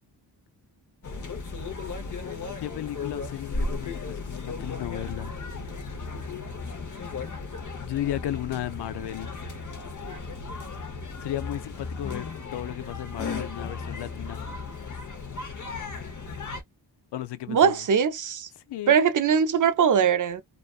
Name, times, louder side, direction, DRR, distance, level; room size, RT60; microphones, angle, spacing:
sound 1, 1.0-16.6, left 4 dB, 45° left, 0.9 m, -35 dB
voice 1, 2.6-5.3 7.8-9.4 11.2-14.4 17.1-17.8 18.7-18.9, left 13 dB, 70° left, 0.5 m, -34 dB
voice 2, 17.5-18.5 18.9-20.4, right 7 dB, 45° right, 0.5 m, -21 dB
2.4 x 2.3 x 2.3 m
cardioid pair, 50°, 43 cm